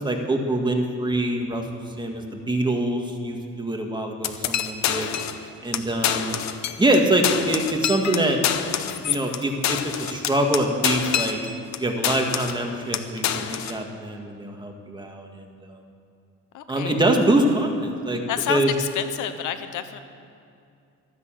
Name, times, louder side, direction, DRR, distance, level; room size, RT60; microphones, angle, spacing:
voice 1, 0.0-1.6 2.0-5.1 5.6-6.4 6.8-8.4 9.0-11.4 11.8-15.8 16.7-18.2 18.5-18.7, right 1 dB, 15° right, 2 dB, 2.0 m, -24 dB
sound 1, 4.2-5.4 5.7-5.8 6.0-7.0 7.2-11.8 12.0-12.6 12.9-13.8, left 9 dB, 65° left, 0.9 m, -26 dB
voice 2, 16.5-17.0 18.3-20.0, left 10 dB, 85° left, 10 dB, 1.0 m, -29 dB
13.0 x 10.5 x 7.5 m, 2.5 s
cardioid pair, 90°, 30 cm